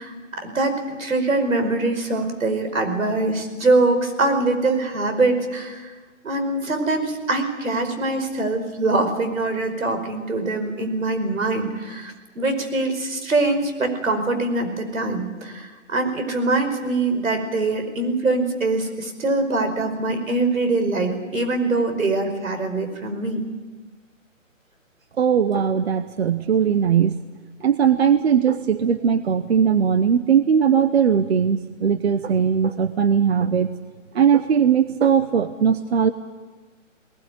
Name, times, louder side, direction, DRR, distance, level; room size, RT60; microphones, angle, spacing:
voice 1, 0.0-5.9 6.2-23.4, right 2 dB, 85° right, 7 dB, 5.2 m, -23 dB
voice 2, 25.2-27.2 27.6-33.7 34.1-36.1, right 7 dB, 50° right, 12 dB, 0.9 m, -19 dB
19.5 x 19.0 x 9.3 m, 1.3 s
hypercardioid pair, 165°, 39 cm